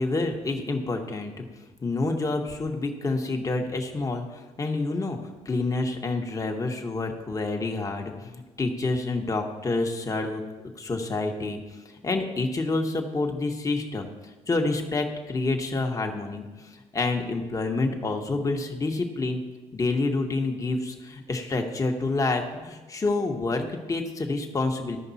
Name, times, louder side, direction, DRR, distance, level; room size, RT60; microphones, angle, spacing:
voice 1, 0.0-1.5 1.8-5.2 5.4-10.4 10.8-14.1 14.5-19.4 19.7-25.0, left 3 dB, 25° left, 3 dB, 1.2 m, -28 dB
13.5 x 5.3 x 4.1 m, 1.2 s
cardioid pair, 90°, 13 cm